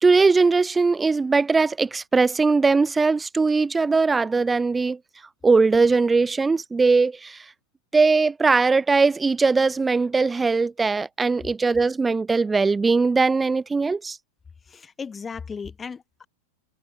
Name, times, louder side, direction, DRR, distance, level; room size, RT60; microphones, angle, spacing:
voice 1, 0.0-5.0 5.4-7.4 7.9-14.2, right 4 dB, 10° right, 0.7 m, -20 dB
voice 2, 14.7-16.3, left 5 dB, 15° left, 3.3 m, -36 dB
figure-of-eight pair, 90°, 0 cm